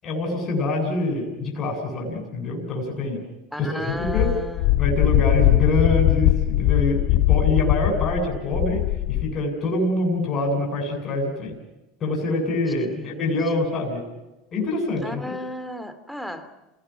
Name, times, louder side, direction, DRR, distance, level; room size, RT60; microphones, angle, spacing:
voice 1, 0.0-3.2 3.6-4.3 4.8-11.6 12.0-14.0 14.5-15.2, left 2 dB, 35° left, 1 dB, 7.9 m, -25 dB
voice 2, 3.5-5.0 12.9-13.3 15.0-16.5, left 1 dB, ahead, 9 dB, 2.8 m, -34 dB
Wind, 4.0-9.3, left 15 dB, 60° left, 1.4 m, -20 dB
28.5 x 18.5 x 6.0 m, 1.0 s
hypercardioid pair, 100°, 0 cm